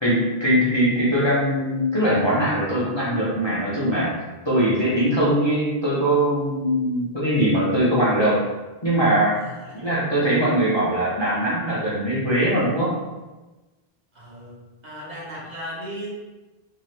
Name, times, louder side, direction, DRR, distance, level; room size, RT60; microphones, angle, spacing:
voice 1, 0.0-4.1 4.5-8.4 8.8-9.4 9.7-12.9, right 1 dB, 35° left, -8 dB, 0.5 m, -21 dB
voice 2, 9.4-9.9 14.1-14.6 14.8-16.1, equal, 45° right, -6 dB, 0.9 m, -36 dB
2.7 x 2.4 x 3.1 m, 1.1 s
omnidirectional pair, 1.0 m